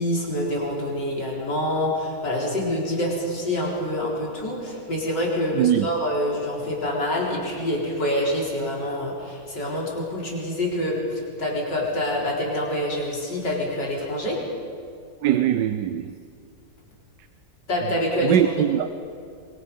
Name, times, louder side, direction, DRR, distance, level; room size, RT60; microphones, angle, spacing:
voice 1, 0.0-14.4 17.7-18.4, left 1 dB, 85° left, 5.0 m, -26 dB
voice 2, 5.5-5.9 15.2-16.1 18.2-18.9, right 10 dB, 85° right, 1.4 m, -21 dB
26.0 x 24.0 x 5.5 m
omnidirectional pair, 1.8 m